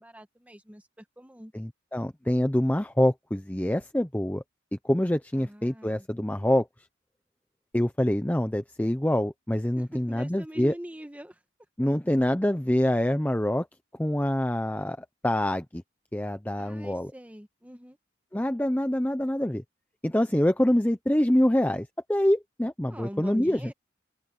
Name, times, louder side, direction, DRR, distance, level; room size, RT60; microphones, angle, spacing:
voice 1, 0.0-1.5 5.3-6.1 9.8-11.4 16.6-18.0 22.9-23.7, equal, 10° right, 1.5 m, -43 dB
voice 2, 1.5-4.4 4.8-6.7 7.7-10.7 11.8-13.7 14.0-15.8 16.1-17.1 18.3-19.6 20.0-23.6, left 1 dB, 10° left, 0.7 m, -25 dB
head